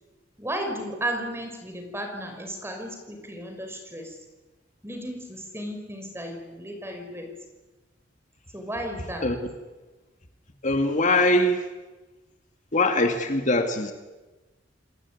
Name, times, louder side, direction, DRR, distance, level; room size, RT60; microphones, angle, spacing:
voice 1, 0.4-4.2 4.8-7.3 8.5-9.3, right 1 dB, 15° right, 5 dB, 5.7 m, -34 dB
voice 2, 10.6-11.6 12.7-13.9, left 2 dB, 45° left, 6 dB, 2.2 m, -22 dB
29.5 x 20.5 x 9.7 m, 1.2 s
head